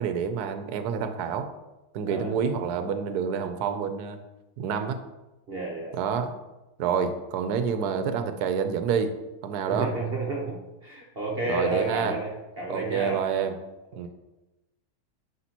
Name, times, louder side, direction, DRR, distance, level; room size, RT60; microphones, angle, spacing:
voice 1, 0.0-1.5 1.9-4.2 4.6-5.0 5.9-6.3 6.8-9.1 9.4-9.9 11.5-12.2 12.7-13.6 14.0-14.1, right 7 dB, 85° right, 9 dB, 1.2 m, -28 dB
voice 2, 2.0-2.3 5.5-5.9 9.7-13.2, right 2 dB, 45° right, -3 dB, 1.1 m, -31 dB
9.9 x 5.8 x 2.9 m, 1.0 s
omnidirectional pair, 1.6 m